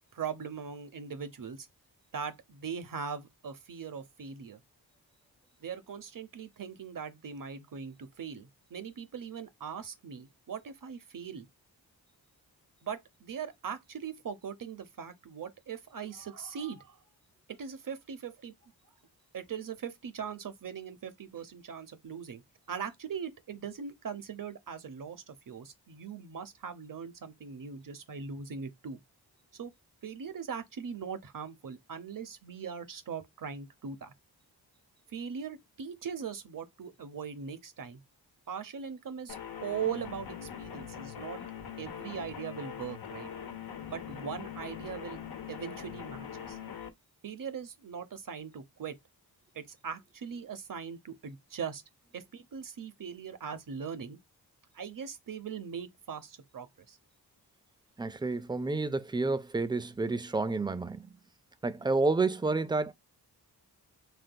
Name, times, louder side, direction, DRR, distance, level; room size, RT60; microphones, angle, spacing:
voice 1, 0.1-1.7 2.1-4.6 5.6-11.5 12.8-17.0 17.6-18.7 19.3-22.4 22.7-29.0 29.6-29.7 30.0-34.1 35.1-38.0 38.5-41.4 41.8-43.3 43.9-45.2 45.5-46.6 47.2-49.0 49.5-51.8 52.1-54.2 54.7-57.0, right 7 dB, 50° right, 0.8 m, -40 dB
sound 1, 39.3-46.9, left 8 dB, 60° left, 0.8 m, -42 dB
voice 2, 58.0-61.1 61.6-62.9, right 3 dB, 10° right, 0.4 m, -30 dB
3.6 x 2.8 x 2.2 m
cardioid pair, 55°, 41 cm